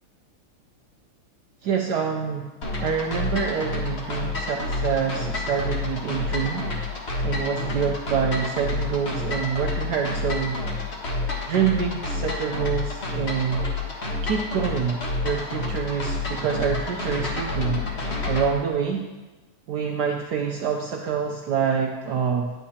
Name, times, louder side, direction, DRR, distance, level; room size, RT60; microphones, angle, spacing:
voice 1, 1.6-2.5 2.8-6.7 7.2-10.6 11.5-13.6 14.2-17.8 18.2-19.0 19.7-22.5, right 7 dB, 75° right, 1 dB, 1.0 m, -26 dB
sound 1, 2.6-18.5, left 3 dB, 35° left, 1.3 m, -29 dB
10.5 x 9.0 x 2.8 m, 1.2 s
omnidirectional pair, 2.4 m